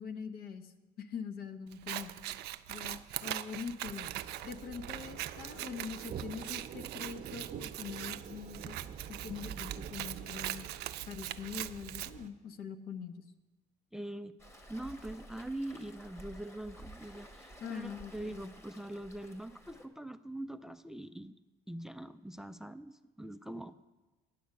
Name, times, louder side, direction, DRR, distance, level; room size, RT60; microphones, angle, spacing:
voice 1, 0.0-2.1 2.7-4.1 4.4-8.8 9.1-10.7 11.1-13.3 17.6-18.4, left 6 dB, 65° left, 9 dB, 0.8 m, -43 dB
Scissors, 1.7-12.1, right 14 dB, 75° right, 0.4 m, -42 dB
sound 1, 4.0-12.3, right 8 dB, 50° right, 0.7 m, -46 dB
voice 2, 13.9-14.4 14.7-21.3 21.7-23.7, right 1 dB, 5° right, 13 dB, 0.3 m, -43 dB
Waves surf, 14.4-19.9, right 1 dB, 15° left, 1.0 m, -52 dB
9.4 x 6.5 x 8.2 m, 1.2 s
cardioid pair, 110°, 17 cm